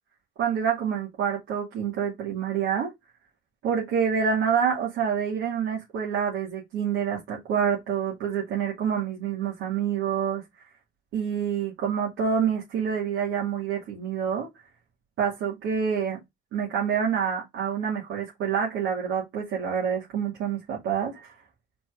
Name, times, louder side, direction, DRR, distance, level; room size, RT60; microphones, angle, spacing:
voice 1, 0.4-2.9 3.6-10.4 11.1-14.5 15.2-16.2 16.5-21.3, right 7 dB, 80° right, 2.5 m, -27 dB
4.4 x 4.3 x 5.0 m
cardioid pair, 90°, 20 cm